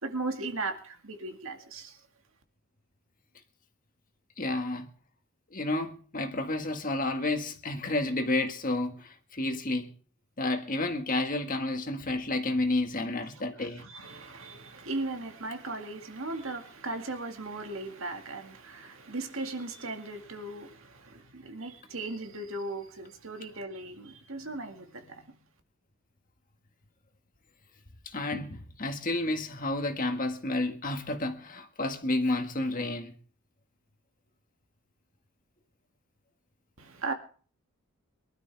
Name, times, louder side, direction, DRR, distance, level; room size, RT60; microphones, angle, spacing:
voice 1, 0.0-2.0 13.3-25.4 36.8-37.1, right 2 dB, 65° right, 2.0 m, -37 dB
voice 2, 4.4-4.9 5.5-9.9 10.4-13.8 28.1-33.1, left 2 dB, 35° left, 1.8 m, -30 dB
23.5 x 12.5 x 3.5 m
head